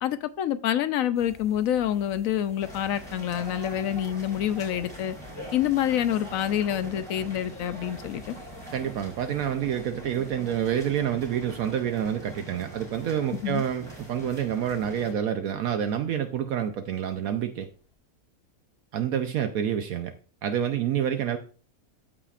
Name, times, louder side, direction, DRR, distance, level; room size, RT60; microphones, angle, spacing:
voice 1, 0.0-5.1 5.5-8.3 13.3-13.6, left 10 dB, 70° left, 0.9 m, -27 dB
sound 1, 1.1-17.9, left 4 dB, 40° left, 1.7 m, -54 dB
sound 2, 2.6-15.1, right 1 dB, 15° right, 4.4 m, -43 dB
voice 2, 8.7-17.7 18.9-20.1 20.4-21.4, right 9 dB, 70° right, 1.0 m, -28 dB
13.5 x 5.0 x 2.4 m
omnidirectional pair, 1.6 m